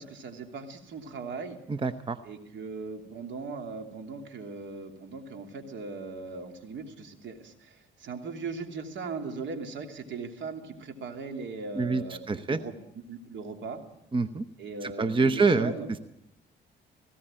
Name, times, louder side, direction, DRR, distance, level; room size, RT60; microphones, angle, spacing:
voice 1, 0.0-1.6 2.2-12.7 13.1-13.8 14.6-15.9, right 4 dB, 70° right, 5 dB, 3.0 m, -39 dB
voice 2, 1.8-2.2 11.8-12.6 14.1-14.4 15.0-15.7, right 4 dB, 25° right, 10 dB, 0.9 m, -25 dB
18.5 x 16.5 x 9.0 m, 0.79 s
cardioid pair, 90°, 20 cm